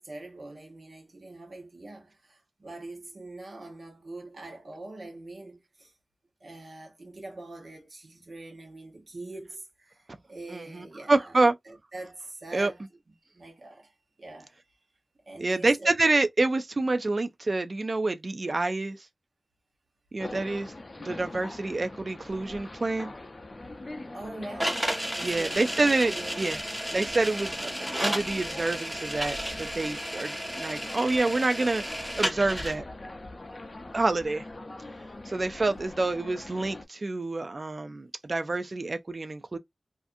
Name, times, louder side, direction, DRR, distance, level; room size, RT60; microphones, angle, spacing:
voice 1, 0.0-5.9 6.4-11.4 11.7-12.8 13.3-14.6 15.3-15.9 24.1-24.8 25.2-25.7 26.1-26.5 35.7-35.8, right 2 dB, 65° right, 1.0 m, -43 dB
voice 2, 10.5-11.5 12.5-12.7 15.4-19.1 20.1-20.7 21.0-23.1 25.2-26.6 26.9-27.7 28.0-31.8 32.2-32.8 33.9-34.5 35.3-39.6, right 2 dB, 50° right, 0.3 m, -27 dB
sound 1, 20.2-36.8, left 2 dB, 40° left, 0.4 m, -43 dB
sound 2, 24.6-32.7, equal, 15° right, 1.0 m, -33 dB
2.4 x 2.4 x 2.6 m
wide cardioid pair, 95°, 0 cm